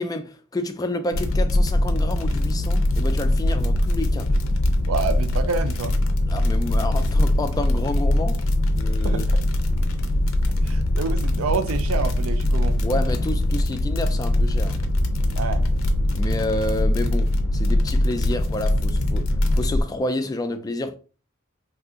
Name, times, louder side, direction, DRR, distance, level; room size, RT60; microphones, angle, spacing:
voice 1, 0.0-4.3 6.3-8.4 8.8-9.2 12.8-14.8 16.1-21.0, left 2 dB, 20° left, 0.3 m, -29 dB
sound 1, 1.1-19.8, left 1 dB, 70° left, 0.5 m, -22 dB
voice 2, 4.9-6.0 9.0-9.4 10.6-12.8 15.3-15.6 16.5-16.6, right 5 dB, 85° right, 0.5 m, -28 dB
2.7 x 2.4 x 3.6 m
head